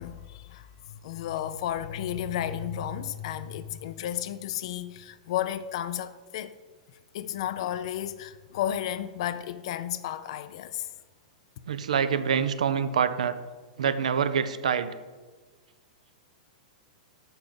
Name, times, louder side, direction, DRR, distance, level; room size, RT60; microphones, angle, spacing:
voice 1, 0.0-6.6 7.1-10.9, left 10 dB, 55° left, 0.3 m, -33 dB
voice 2, 11.7-13.4 13.8-14.9, right 7 dB, 70° right, 0.5 m, -26 dB
5.7 x 5.4 x 5.2 m
figure-of-eight pair, 105°, 4 cm